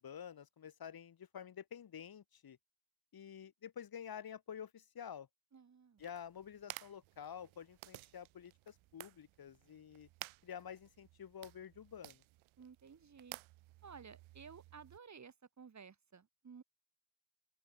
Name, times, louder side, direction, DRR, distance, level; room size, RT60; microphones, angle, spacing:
voice 1, 0.0-2.6 3.1-5.3 6.0-10.1 10.4-12.2, left 8 dB, 45° left, 2.0 m, -49 dB
voice 2, 5.5-6.0 12.6-13.4 13.8-16.6, right 6 dB, 35° right, 2.1 m, -55 dB
sound 1, 6.0-15.0, right 19 dB, 70° right, 0.8 m, -55 dB
open air
supercardioid pair, 70°, 49 cm